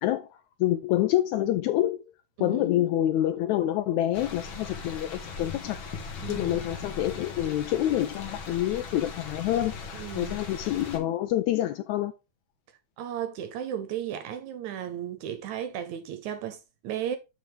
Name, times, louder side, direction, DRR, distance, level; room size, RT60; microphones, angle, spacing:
voice 1, 0.6-2.0 2.4-5.8 6.3-12.1, left 13 dB, 80° left, 1.7 m, -27 dB
voice 2, 2.4-2.7 6.2-6.6 9.9-10.4 13.0-17.2, right 9 dB, 75° right, 1.9 m, -35 dB
sound 1, 4.1-11.0, left 4 dB, 60° left, 1.4 m, -39 dB
7.9 x 4.8 x 3.3 m
omnidirectional pair, 3.7 m